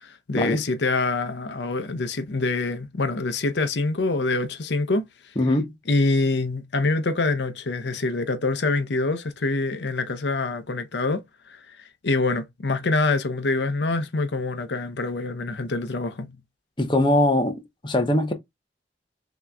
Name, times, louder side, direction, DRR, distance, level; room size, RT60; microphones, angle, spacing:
voice 1, 0.0-5.0 5.9-16.3, left 3 dB, 75° left, 0.7 m, -25 dB
voice 2, 5.4-5.7 16.8-18.3, left 1 dB, 25° left, 0.8 m, -21 dB
5.8 x 2.9 x 2.2 m
head